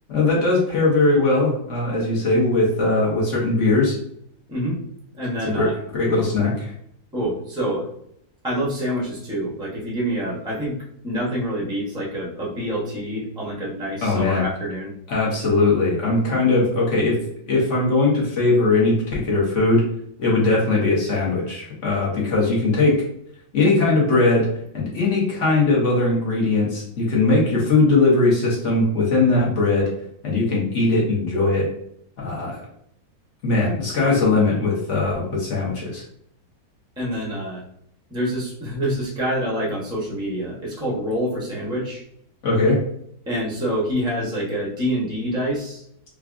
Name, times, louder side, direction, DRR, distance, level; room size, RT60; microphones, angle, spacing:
voice 1, 0.1-4.0 5.4-6.7 14.0-14.4 15.1-17.2 17.5-19.8 20.2-23.0 23.5-24.5 24.7-29.9 30.2-31.7 32.2-32.6 33.4-36.0 42.4-42.8, left 3 dB, 45° left, -4 dB, 1.1 m, -20 dB
voice 2, 4.5-4.8 5.1-5.7 7.1-7.9 8.4-10.8 11.0-14.9 37.0-37.6 38.1-42.0 43.3-45.8, equal, 5° right, -5 dB, 0.4 m, -26 dB
4.8 x 2.3 x 2.4 m, 0.71 s
omnidirectional pair, 2.0 m